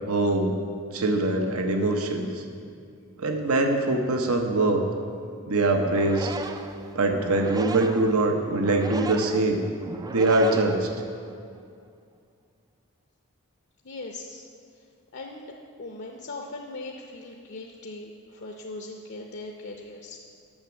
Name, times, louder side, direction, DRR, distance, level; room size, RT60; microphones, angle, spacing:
voice 1, 0.1-0.5 0.9-2.3 3.2-4.8 5.5-6.3 6.9-9.6 10.1-10.9, right 2 dB, 75° right, 4 dB, 0.9 m, -23 dB
sound 1, 5.7-11.4, right 3 dB, 15° right, 0.3 m, -36 dB
voice 2, 13.8-14.5 14.7-14.8 15.1-20.2, left 2 dB, 55° left, 1 dB, 0.6 m, -40 dB
8.9 x 6.1 x 7.1 m, 2.3 s
head